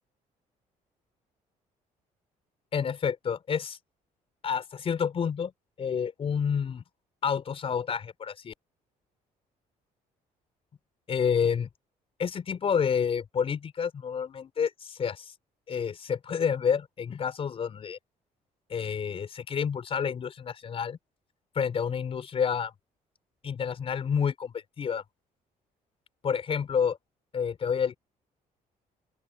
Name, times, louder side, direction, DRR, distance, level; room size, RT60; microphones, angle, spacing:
voice 1, 2.7-3.8 4.4-5.5 5.8-6.8 7.2-8.5 11.1-11.7 12.2-15.3 15.7-18.0 18.7-21.0 21.5-22.7 23.4-25.0 26.2-27.0 27.3-28.0, left 7 dB, 40° left, 5.1 m, -29 dB
open air
cardioid pair, 140°, 15 cm